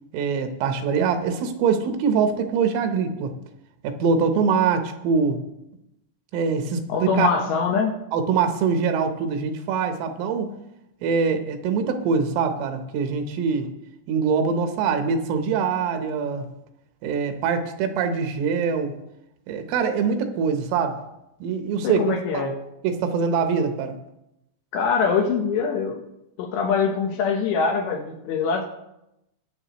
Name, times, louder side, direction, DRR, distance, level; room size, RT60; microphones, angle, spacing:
voice 1, 0.1-3.4 3.8-5.4 6.3-7.3 8.1-10.5 11.0-13.7 14.1-16.5 17.0-19.0 19.5-21.0 21.4-22.0 22.3-22.4 22.8-24.0, right 6 dB, 80° right, 6 dB, 3.5 m, -23 dB
voice 2, 6.9-8.0 21.8-22.5 24.7-26.0 26.4-28.6, left 5 dB, 75° left, 3 dB, 2.8 m, -23 dB
21.5 x 7.6 x 3.0 m, 0.86 s
omnidirectional pair, 5.8 m